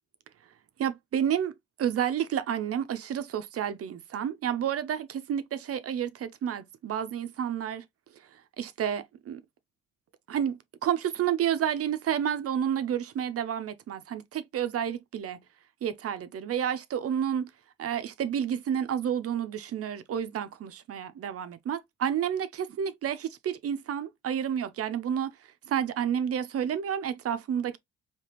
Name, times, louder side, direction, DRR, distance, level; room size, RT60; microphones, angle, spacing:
voice 1, 0.8-7.8 8.6-9.4 10.3-15.4 15.8-17.5 17.8-25.3 25.7-27.8, right 9 dB, 50° right, 0.5 m, -30 dB
3.3 x 2.8 x 2.8 m
cardioid pair, 90°, 30 cm